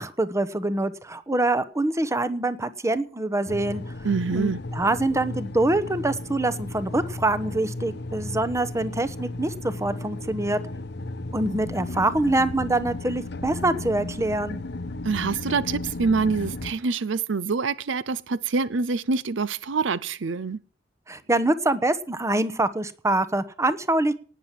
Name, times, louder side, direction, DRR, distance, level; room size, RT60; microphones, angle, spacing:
voice 1, 0.0-3.8 4.3-10.6 11.3-14.6 21.1-24.1, right 2 dB, 15° right, 1.0 m, -25 dB
sound 1, 3.5-16.7, left 2 dB, 60° left, 1.0 m, -34 dB
voice 2, 4.0-4.6 15.0-20.6, right 4 dB, 70° right, 0.6 m, -26 dB
18.0 x 7.4 x 7.5 m
head